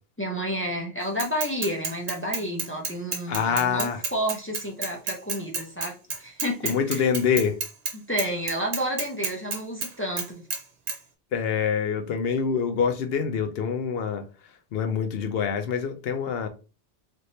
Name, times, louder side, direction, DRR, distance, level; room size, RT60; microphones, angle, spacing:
voice 1, 0.2-5.9 6.2-7.1 8.1-10.5, equal, 15° left, 0.5 m, -30 dB
Bicycle / Mechanisms, 1.2-7.9 8.2-9.9 10.2-10.6 10.9-11.0, right 4 dB, 90° right, 1.2 m, -30 dB
voice 2, 3.3-4.0 6.6-7.6 11.3-14.3 14.7-16.5, left 6 dB, 65° left, 0.8 m, -25 dB
3.5 x 3.0 x 2.7 m
omnidirectional pair, 1.2 m